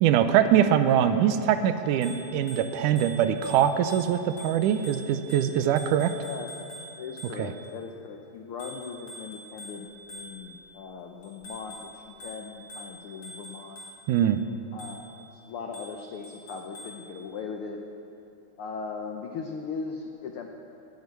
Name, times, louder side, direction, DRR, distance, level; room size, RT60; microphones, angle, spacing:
voice 1, 0.0-6.1 7.4-7.5 14.1-14.4, right 9 dB, 85° right, 10 dB, 2.2 m, -23 dB
Bicycle bell, 2.0-7.7 8.6-10.7 11.2-14.2 14.8-15.2 15.7-17.1, equal, 60° left, 4.5 m, -45 dB
voice 2, 6.2-6.5 7.0-13.8 14.7-17.8 18.6-20.5, left 5 dB, 85° left, 3 dB, 1.2 m, -39 dB
11.5 x 10.5 x 9.4 m, 2.8 s
omnidirectional pair, 3.6 m